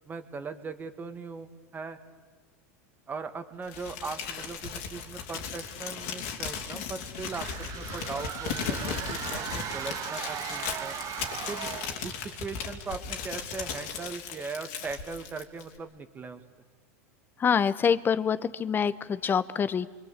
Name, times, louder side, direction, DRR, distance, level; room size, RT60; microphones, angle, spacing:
voice 1, 0.1-2.0 3.1-11.0 11.5-11.7 12.0-16.4, right 4 dB, 25° right, 8 dB, 1.9 m, -39 dB
Crumpling crinkling, 3.7-15.8, left 7 dB, 70° left, 3.0 m, -37 dB
sound 1, 7.1-12.1, right 10 dB, 45° right, 1.5 m, -37 dB
voice 2, 17.4-19.9, left 7 dB, 25° left, 15 dB, 1.0 m, -26 dB
28.0 x 22.5 x 8.3 m, 1.4 s
hypercardioid pair, 105°, 8 cm